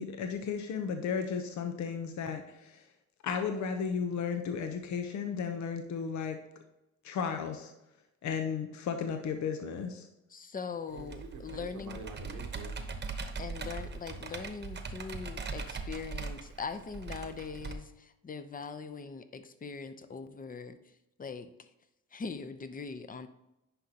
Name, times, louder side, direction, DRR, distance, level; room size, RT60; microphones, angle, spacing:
voice 1, 0.0-2.8 3.2-6.4 7.0-7.7 8.2-10.1, left 6 dB, 70° left, 5 dB, 0.8 m, -34 dB
voice 2, 10.3-12.0 13.4-20.8 21.2-21.5 22.1-23.3, left 5 dB, 30° left, 10 dB, 0.7 m, -41 dB
voice 3, 10.9-12.8, right 4 dB, 90° right, 3 dB, 1.2 m, -47 dB
Computer keyboard, 11.0-17.7, right 4 dB, 35° right, 1.0 m, -40 dB
10.0 x 5.3 x 2.9 m, 0.92 s
cardioid pair, 90°, 30 cm